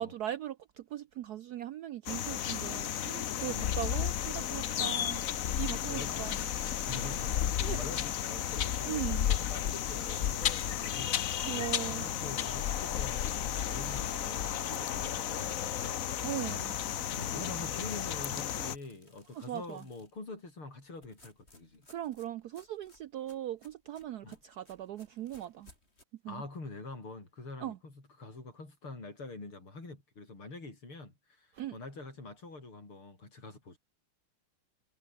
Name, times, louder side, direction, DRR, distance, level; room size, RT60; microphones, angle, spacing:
voice 1, 0.0-5.2 5.5-6.4 6.8-6.9 7.6-7.8 8.9-9.3 11.4-12.1 14.7-14.9 16.2-16.7 19.3-19.8 21.9-25.7 26.2-26.4 27.6-27.8 31.5-31.8, right 12 dB, 75° right, 0.9 m, -39 dB
sound 1, 2.1-18.8, left 10 dB, 55° left, 0.9 m, -33 dB
voice 2, 3.4-3.9 4.8-5.1 5.9-6.3 6.8-16.0 17.1-21.9 24.2-24.4 26.3-33.8, left 3 dB, 80° left, 7.8 m, -45 dB
sound 2, 6.2-8.2 10.1-13.0 13.5-13.6 13.9-14.0 14.3-14.4 15.1-17.6 18.4-20.2 21.0-26.0, left 1 dB, 30° left, 7.1 m, -59 dB
omnidirectional pair, 2.3 m